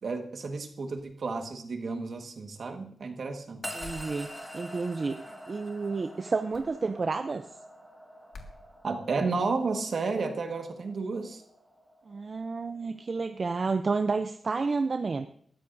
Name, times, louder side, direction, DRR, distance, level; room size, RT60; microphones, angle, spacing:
voice 1, 0.0-3.6 4.5-4.6 8.8-11.4, right 4 dB, 65° right, 5 dB, 1.5 m, -32 dB
sound 1, 3.6-14.0, equal, 5° left, 2.1 m, -46 dB
voice 2, 3.7-4.3 4.5-7.5 12.1-15.3, right 4 dB, 45° right, 9 dB, 0.5 m, -30 dB
sound 2, 3.8-4.1 6.5-6.7 8.3-8.6, left 3 dB, 75° left, 1.8 m, -45 dB
19.0 x 13.5 x 2.6 m, 0.63 s
wide cardioid pair, 105°, 0 cm